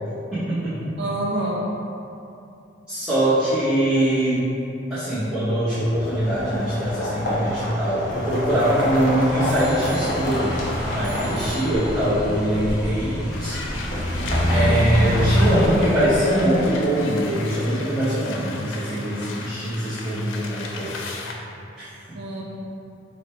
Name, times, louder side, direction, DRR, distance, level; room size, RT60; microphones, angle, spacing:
voice 1, 0.3-0.9 2.9-4.5 4.9-10.5 10.9-13.6 14.5-21.0 21.8-22.2, right 1 dB, 5° right, -14 dB, 0.7 m, -22 dB
voice 2, 1.0-1.6 14.5-15.1 22.1-22.4, right 2 dB, 60° right, -3 dB, 0.5 m, -28 dB
sound 1, 5.7-16.6, equal, 45° left, 0.9 m, -26 dB
Bicycle bell, 7.5-8.8 9.5-10.6 11.0-12.3 13.0-13.1, right 1 dB, 85° right, 1.0 m, -43 dB
sound 2, 13.3-21.3, left 3 dB, 90° left, 0.4 m, -36 dB
5.0 x 2.1 x 4.2 m, 2.8 s
head